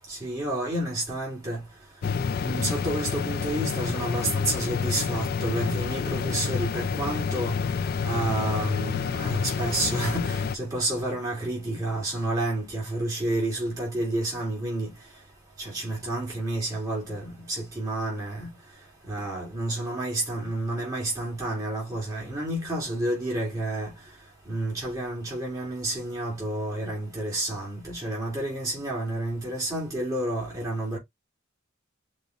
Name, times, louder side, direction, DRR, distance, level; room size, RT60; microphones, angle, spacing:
voice 1, 0.1-1.6 2.4-7.5 8.0-14.9 15.6-18.5 19.1-23.9 24.5-31.0, right 1 dB, 20° right, 2.1 m, -30 dB
sound 1, 2.0-10.6, left 5 dB, 50° left, 0.4 m, -28 dB
5.2 x 2.2 x 3.6 m
head